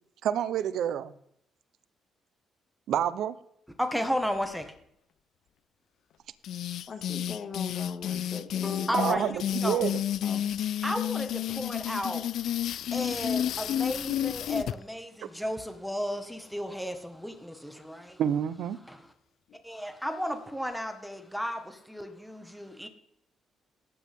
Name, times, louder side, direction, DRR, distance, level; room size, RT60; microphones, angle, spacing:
voice 1, 0.2-1.1 2.9-3.4 9.0-10.0 18.2-18.8, right 9 dB, 75° right, 14 dB, 0.8 m, -28 dB
voice 2, 3.8-4.7 8.9-9.2 9.6-9.8 10.8-12.3 12.9-18.2 18.9-19.0 19.6-22.9, equal, ahead, 6 dB, 1.6 m, -33 dB
sound 1, 6.4-14.7, left 10 dB, 75° left, 0.4 m, -31 dB
voice 3, 6.9-9.3 10.2-10.4, left 4 dB, 50° left, 7 dB, 2.0 m, -39 dB
Bowed string instrument, 8.6-11.7, left 5 dB, 15° left, 3.9 m, -46 dB
18.0 x 9.4 x 3.7 m, 0.75 s
cardioid pair, 90°, 0 cm